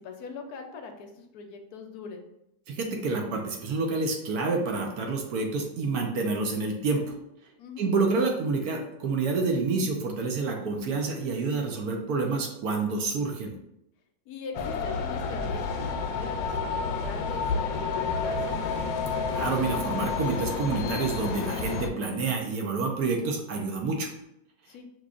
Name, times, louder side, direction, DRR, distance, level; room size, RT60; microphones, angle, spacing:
voice 1, 0.0-2.3 7.6-7.9 14.3-18.8 24.7-24.9, left 5 dB, 70° left, 4 dB, 1.0 m, -41 dB
voice 2, 2.7-7.1 7.8-13.6 19.3-24.1, right 3 dB, 65° right, 2 dB, 1.0 m, -28 dB
sound 1, 14.5-21.9, left 5 dB, 85° left, 1.3 m, -30 dB
5.9 x 3.1 x 2.4 m, 0.82 s
omnidirectional pair, 1.9 m